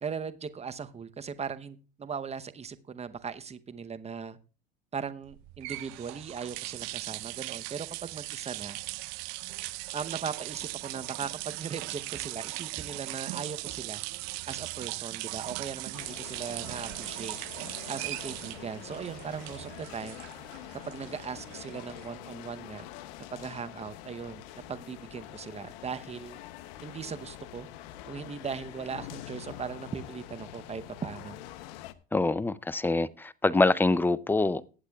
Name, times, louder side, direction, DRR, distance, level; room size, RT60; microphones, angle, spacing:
voice 1, 0.0-4.4 4.9-8.8 9.9-14.0 14.5-17.4 17.9-20.2 20.9-22.9 23.3-24.4 24.7-26.4 26.8-27.7 28.1-31.4, right 6 dB, 20° right, 0.8 m, -38 dB
sound 1, 5.3-22.3, right 22 dB, 65° right, 0.5 m, -39 dB
sound 2, 15.9-31.9, left 13 dB, 75° left, 0.8 m, -45 dB
voice 2, 32.1-34.7, left 3 dB, 5° left, 0.4 m, -25 dB
20.0 x 8.0 x 2.3 m
supercardioid pair, 90°, 30 cm